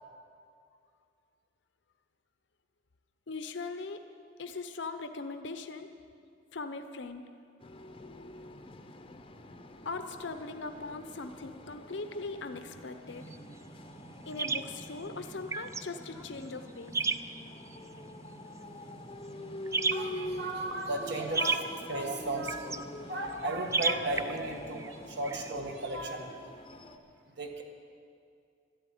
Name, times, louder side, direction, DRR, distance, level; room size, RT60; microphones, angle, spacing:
voice 1, 3.3-4.0 4.4-5.9 6.5-7.3 9.8-13.2 14.3-16.9 20.7-20.8 22.7-22.8, left 3 dB, 70° left, 8 dB, 0.8 m, -40 dB
sound 1, 7.6-27.0, left 1 dB, 30° left, 0.7 m, -46 dB
sound 2, 13.1-25.5, right 4 dB, 15° right, 0.3 m, -37 dB
voice 2, 19.9-27.0 27.4-27.6, right 1 dB, 65° right, 2 dB, 1.7 m, -35 dB
13.0 x 8.8 x 10.0 m, 2.4 s
head